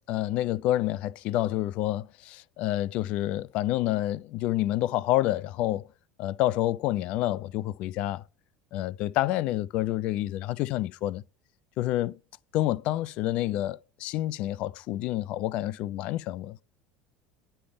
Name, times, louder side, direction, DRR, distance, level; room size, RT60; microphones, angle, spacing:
voice 1, 0.1-5.9 6.2-8.2 8.7-11.2 11.8-12.2 12.5-16.6, left 14 dB, 50° left, 0.3 m, -28 dB
9.8 x 3.3 x 4.4 m
figure-of-eight pair, 70°, 3 cm